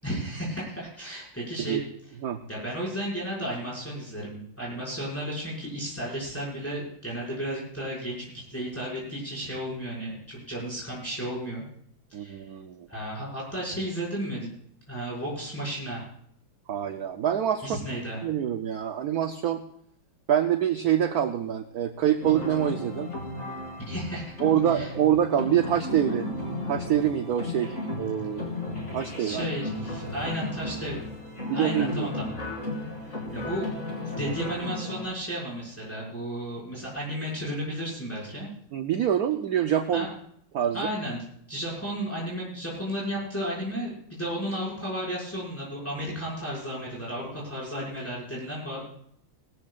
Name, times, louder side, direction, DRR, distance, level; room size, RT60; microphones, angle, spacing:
voice 1, 0.0-1.8 2.5-11.6 12.1-12.4 12.9-14.5 14.9-16.0 17.6-18.2 23.9-24.3 24.7-24.9 27.8-27.9 29.2-31.0 31.5-32.3 33.1-33.7 34.1-38.5 39.9-40.1 40.7-48.9, equal, 5° left, -6 dB, 5.8 m, -33 dB
voice 2, 12.1-12.9 16.7-17.8 18.2-19.6 20.3-23.1 24.4-26.3 26.7-28.7 28.9-29.5 31.5-32.1 38.7-40.1 40.5-40.9, right 10 dB, 65° right, 8 dB, 1.0 m, -26 dB
sound 1, 22.2-35.0, left 2 dB, 30° left, 3.1 m, -34 dB
20.0 x 14.0 x 2.5 m, 0.66 s
omnidirectional pair, 2.4 m